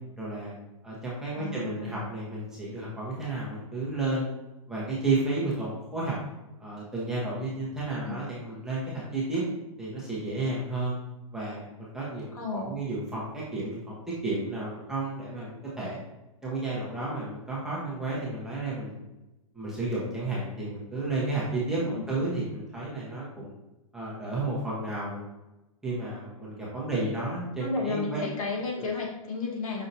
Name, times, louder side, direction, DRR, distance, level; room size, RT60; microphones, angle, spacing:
voice 1, 0.2-0.5 0.8-4.3 4.7-6.2 6.6-9.4 9.8-10.9 11.3-13.9 14.2-16.0 16.4-19.0 19.5-23.5 23.9-25.2 25.8-28.2, right 2 dB, 5° right, -7 dB, 0.9 m, -32 dB
voice 2, 1.3-2.1 7.8-8.2 12.3-12.8 21.9-22.0 26.9-27.1 27.6-29.9, left 3 dB, 70° left, 0 dB, 1.3 m, -33 dB
5.6 x 2.7 x 2.6 m, 0.98 s
hypercardioid pair, 155°, 19 cm